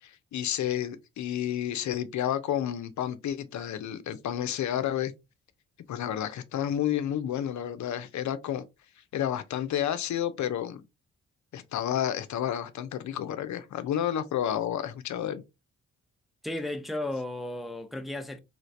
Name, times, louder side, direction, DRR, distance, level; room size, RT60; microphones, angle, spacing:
voice 1, 0.0-5.1 5.9-8.6 9.1-10.8 11.5-15.4, left 10 dB, 60° left, 0.6 m, -30 dB
voice 2, 16.4-18.4, left 1 dB, ahead, 0.6 m, -34 dB
3.2 x 3.1 x 2.6 m
supercardioid pair, 45°, 32 cm